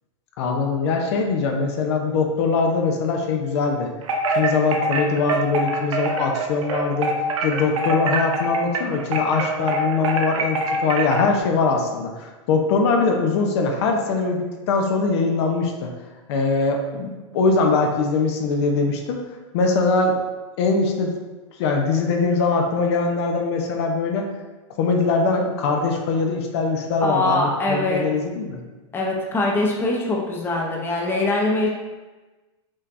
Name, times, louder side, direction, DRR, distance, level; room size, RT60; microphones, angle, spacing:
voice 1, 0.4-3.9 4.3-7.1 7.4-15.9 16.3-19.2 19.5-20.2 20.6-21.1 21.6-24.3 24.8-28.6, left 4 dB, 55° left, 2 dB, 0.7 m, -22 dB
Wind chime, 4.0-11.4, right 2 dB, 80° right, 0.7 m, -24 dB
voice 2, 27.0-28.1 28.9-31.7, left 2 dB, 15° left, -1 dB, 0.7 m, -22 dB
5.5 x 3.3 x 2.5 m, 1.2 s
hypercardioid pair, 130°, 16 cm